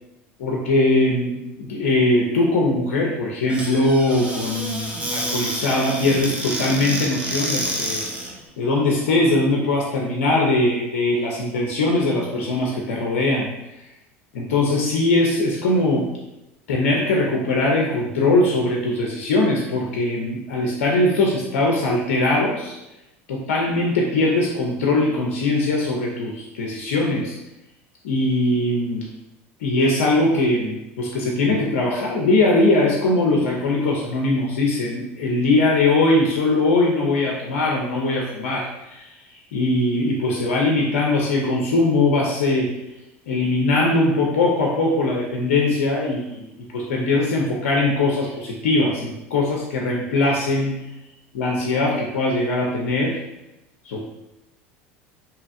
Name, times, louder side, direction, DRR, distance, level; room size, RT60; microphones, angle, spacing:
voice 1, 0.4-8.0 8.6-13.5 14.3-16.1 16.7-22.8 23.3-27.3 28.0-29.1 29.6-39.1 39.5-42.7 43.3-50.8 51.3-53.2 53.9-54.1, left 2 dB, 80° left, -2 dB, 0.4 m, -21 dB
Squeak / Cupboard open or close, 3.5-8.4, right 1 dB, 15° right, 0.5 m, -28 dB
2.7 x 2.4 x 2.4 m, 0.92 s
hypercardioid pair, 80°, 7 cm